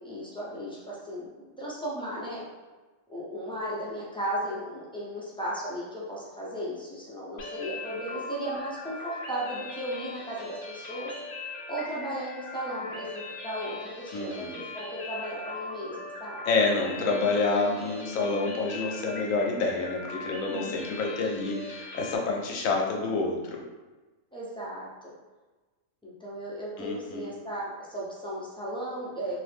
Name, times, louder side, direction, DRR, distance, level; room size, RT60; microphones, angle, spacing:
voice 1, 0.0-1.3 1.6-2.4 3.1-11.1 11.7-16.4 20.4-21.0 24.3-25.1 26.0-29.4, right 1 dB, 5° left, -7 dB, 0.4 m, -36 dB
sound 1, 7.4-22.2, left 3 dB, 60° left, 0.6 m, -40 dB
voice 2, 14.1-14.6 16.5-23.6 26.8-27.3, left 3 dB, 80° left, 0 dB, 1.0 m, -28 dB
2.8 x 2.5 x 3.4 m, 1.2 s
omnidirectional pair, 1.4 m